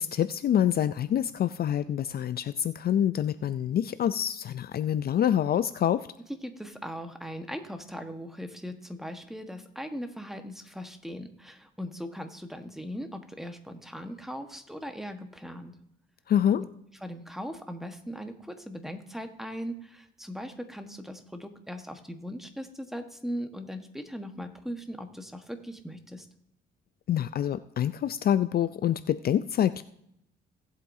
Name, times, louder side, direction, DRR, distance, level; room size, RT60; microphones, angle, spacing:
voice 1, 0.0-6.1 16.3-16.6 27.1-29.8, left 10 dB, 50° left, 13 dB, 0.4 m, -26 dB
voice 2, 6.4-15.7 16.6-16.7 17.0-26.3, equal, ahead, 6 dB, 1.3 m, -39 dB
18.0 x 8.1 x 2.7 m, 0.76 s
cardioid pair, 90°, 20 cm